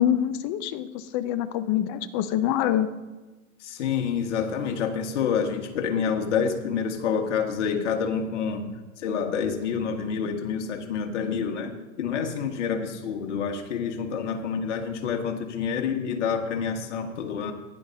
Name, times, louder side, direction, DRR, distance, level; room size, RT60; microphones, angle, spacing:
voice 1, 0.0-2.9, left 11 dB, 20° left, 12 dB, 0.3 m, -25 dB
voice 2, 3.6-8.7 9.0-17.5, left 6 dB, 60° left, 5 dB, 1.6 m, -28 dB
15.5 x 10.5 x 2.7 m, 1.2 s
hypercardioid pair, 110°, 41 cm